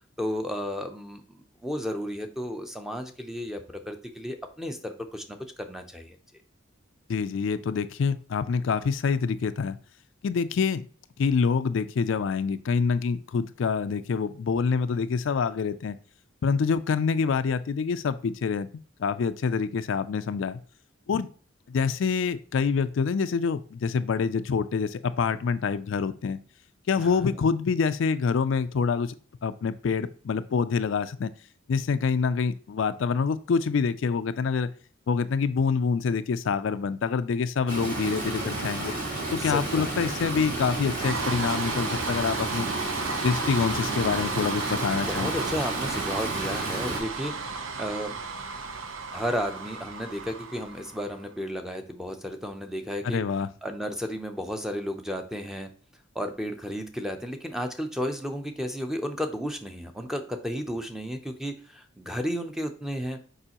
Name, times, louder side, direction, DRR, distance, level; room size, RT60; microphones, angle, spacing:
voice 1, 0.2-6.2 27.0-27.4 39.4-40.2 45.0-47.4 47.8-48.1 49.1-53.2 53.6-55.7 56.1-63.2, equal, ahead, 6 dB, 0.6 m, -33 dB
voice 2, 7.1-9.8 10.2-10.9 11.2-16.0 16.4-18.7 19.0-20.6 21.1-21.3 21.7-26.4 26.9-29.1 29.4-31.3 31.7-34.7 35.1-38.9 39.3-42.7 43.2-45.3 53.0-53.5, left 5 dB, 70° left, 12 dB, 0.4 m, -26 dB
Stream, 37.7-47.0, right 2 dB, 40° right, 2.1 m, -32 dB
sound 1, 40.9-51.2, right 4 dB, 75° right, 0.7 m, -34 dB
6.7 x 4.8 x 2.9 m, 0.43 s
head